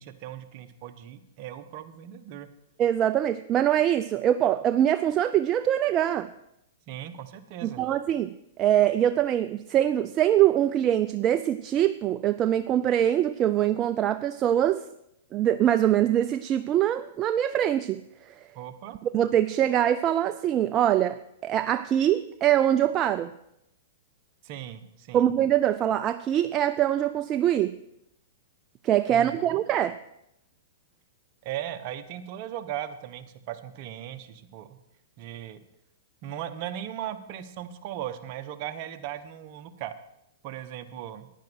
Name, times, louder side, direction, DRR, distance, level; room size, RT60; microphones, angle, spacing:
voice 1, 0.0-2.5 6.9-7.8 18.5-19.0 24.4-25.3 29.1-29.4 31.4-34.8 35.2-35.6 36.2-39.9 40.4-41.3, right 11 dB, 45° right, 9 dB, 1.0 m, -38 dB
voice 2, 2.8-6.3 7.6-14.8 15.3-18.0 19.1-23.3 25.1-27.8 28.8-30.0, right 11 dB, 30° right, 11 dB, 0.4 m, -23 dB
10.5 x 9.7 x 6.3 m, 0.82 s
hypercardioid pair, 125°, 0 cm